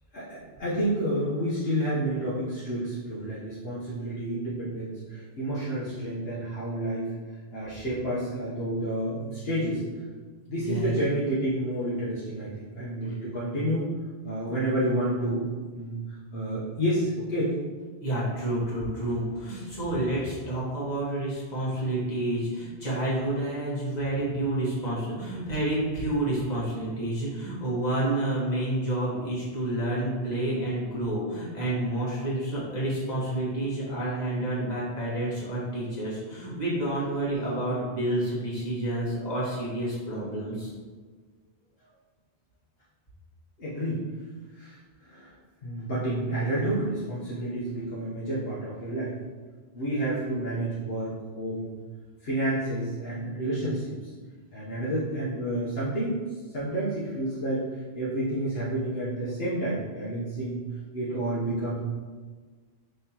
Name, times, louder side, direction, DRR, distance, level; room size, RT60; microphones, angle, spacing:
voice 1, 0.1-7.1 7.5-9.8 10.5-13.9 14.2-15.4 15.7-17.6 43.6-44.0 44.5-44.8 45.0-45.3 45.6-49.1 49.7-51.7 52.2-53.9 54.5-56.2 56.5-60.6 60.9-61.8, right 1 dB, 65° left, -9 dB, 1.1 m, -30 dB
voice 2, 10.6-10.9 18.0-40.7, right 1 dB, 40° left, -7 dB, 1.5 m, -29 dB
5.5 x 3.4 x 2.9 m, 1.4 s
omnidirectional pair, 1.1 m